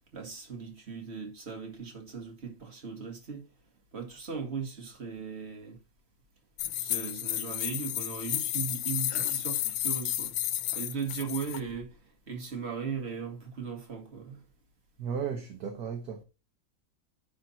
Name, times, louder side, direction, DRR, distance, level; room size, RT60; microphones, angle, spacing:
voice 1, 0.1-3.5 3.9-5.8 6.8-10.3 10.7-12.0 12.3-14.4, right 5 dB, 35° right, 2.1 m, -38 dB
sound 1, 6.6-11.6, left 13 dB, 85° left, 1.4 m, -32 dB
voice 2, 15.0-16.2, right 7 dB, 55° right, 1.5 m, -35 dB
10.0 x 4.5 x 4.1 m
omnidirectional pair, 2.2 m